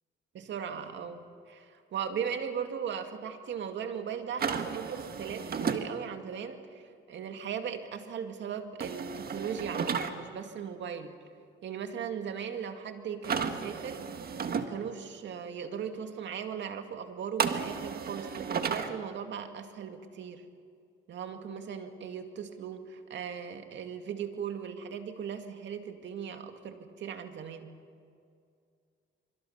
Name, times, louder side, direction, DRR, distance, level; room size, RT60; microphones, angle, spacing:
voice 1, 0.3-11.2 11.6-20.5 21.1-27.8, right 7 dB, 65° right, 6 dB, 2.1 m, -38 dB
sound 1, 4.4-5.8 8.8-10.1 13.2-14.6 17.4-18.9, right 6 dB, 50° right, 1.7 m, -33 dB
25.0 x 25.0 x 5.7 m, 2.3 s
cardioid pair, 90°, 20 cm